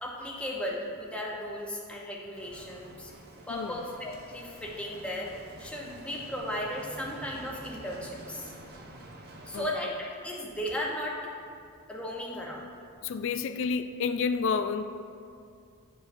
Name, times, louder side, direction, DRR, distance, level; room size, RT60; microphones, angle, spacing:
voice 1, 0.0-3.1 3.5-8.5 9.5-11.3 11.9-12.7, left 1 dB, 5° left, -2 dB, 0.7 m, -36 dB
Bicycle, 2.3-9.8, right 1 dB, 45° right, 0.6 m, -48 dB
voice 2, 13.0-14.8, left 5 dB, 60° left, 11 dB, 0.3 m, -29 dB
10.0 x 4.8 x 2.6 m, 2.4 s
head